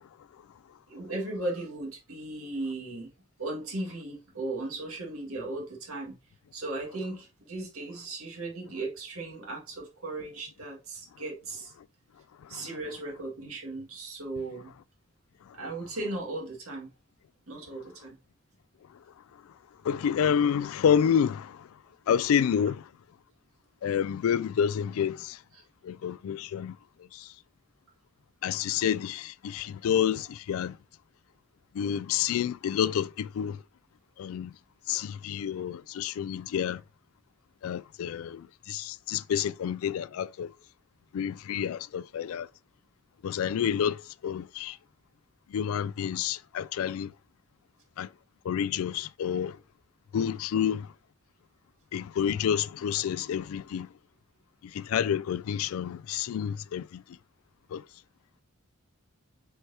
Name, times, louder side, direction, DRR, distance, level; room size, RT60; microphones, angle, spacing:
voice 1, 0.9-3.1 3.4-6.2 6.5-11.7 12.5-14.7 15.5-16.9 17.5-18.1 25.5-25.6, right 2 dB, 90° right, 2.0 m, -37 dB
voice 2, 19.8-21.7 22.1-22.9 23.8-25.4 25.8-26.8 27.1-27.3 28.4-30.8 31.7-33.6 34.2-34.5 34.9-36.8 37.6-40.5 41.1-42.5 43.2-44.8 45.5-47.1 48.0-48.1 48.4-49.6 50.1-50.9 51.9-53.9 54.6-57.0 57.7-57.8, left 8 dB, 80° left, 0.3 m, -29 dB
7.9 x 4.5 x 2.8 m
head